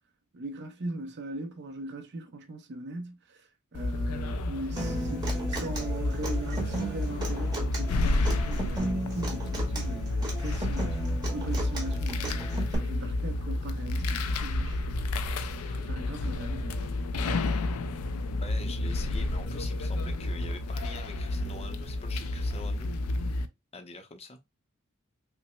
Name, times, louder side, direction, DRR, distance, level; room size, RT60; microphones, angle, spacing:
voice 1, 0.3-3.4 3.7-15.1 15.7-17.0, right 2 dB, 55° right, 0.6 m, -40 dB
sound 1, 3.7-23.5, left 2 dB, 85° left, 0.4 m, -30 dB
Human voice / Acoustic guitar, 4.8-12.7, right 2 dB, 20° right, 1.1 m, -36 dB
voice 2, 18.4-23.4 23.7-24.4, left 3 dB, 30° left, 0.6 m, -44 dB
5.6 x 2.0 x 2.2 m
head